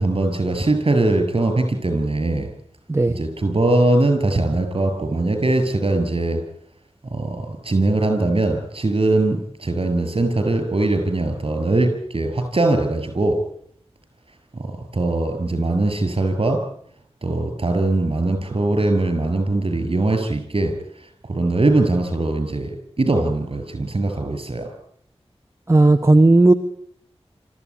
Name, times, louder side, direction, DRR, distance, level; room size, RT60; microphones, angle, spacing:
voice 1, 0.0-2.5 3.1-6.4 7.1-13.4 14.5-16.6 17.2-20.7 21.0-24.7, right 2 dB, 55° right, 7 dB, 7.4 m, -21 dB
voice 2, 25.7-26.5, right 2 dB, 25° right, 6 dB, 1.2 m, -13 dB
26.5 x 14.5 x 10.0 m, 0.69 s
wide cardioid pair, 70°, 11 cm